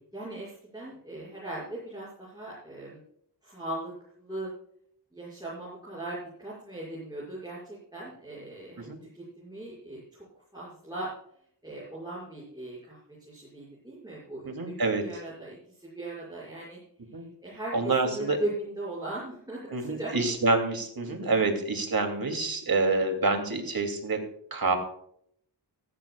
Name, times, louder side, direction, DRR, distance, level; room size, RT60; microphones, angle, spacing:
voice 1, 0.1-3.0 3.4-3.9 4.2-4.5 5.1-10.2 10.5-11.1 11.6-14.7 15.0-16.8 17.4-20.1, right 1 dB, 10° right, -8 dB, 6.4 m, -39 dB
voice 2, 14.4-15.0 17.1-17.2 17.7-18.4 19.7-24.2 24.5-24.8, right 3 dB, 55° right, 5 dB, 2.8 m, -27 dB
16.5 x 14.0 x 2.4 m, 0.66 s
wide cardioid pair, 115°, 42 cm